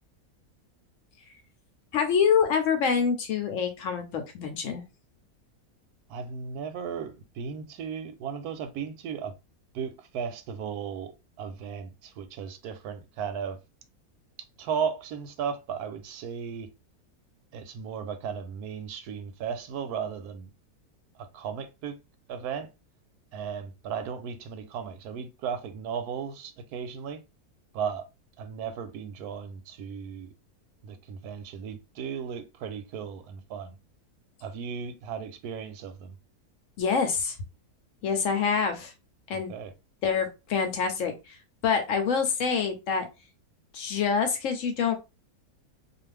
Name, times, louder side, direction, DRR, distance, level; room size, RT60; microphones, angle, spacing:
voice 1, 1.9-4.8 36.8-37.4 38.0-38.9 39.3-39.5 40.0-41.4 41.6-43.1 43.7-44.9, left 6 dB, 65° left, 0.9 m, -26 dB
voice 2, 6.1-9.3 9.7-13.6 14.6-16.7 17.5-20.5 21.1-22.0 22.3-22.7 23.3-27.2 27.7-28.1 28.4-30.3 30.8-33.8 34.4-36.1 39.3-39.7, right 7 dB, 85° right, 1.1 m, -35 dB
2.5 x 2.4 x 3.2 m
omnidirectional pair, 1.6 m